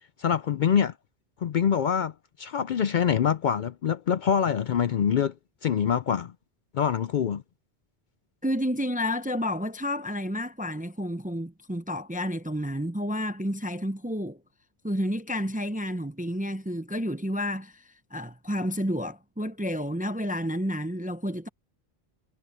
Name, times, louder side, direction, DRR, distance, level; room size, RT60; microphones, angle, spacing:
voice 1, 0.2-0.9 1.4-2.1 2.4-5.3 5.6-6.3 6.7-7.4, left 8 dB, 55° left, 0.6 m, -25 dB
voice 2, 8.4-14.4 14.8-21.5, equal, 10° right, 0.5 m, -30 dB
omnidirectional pair, 1.1 m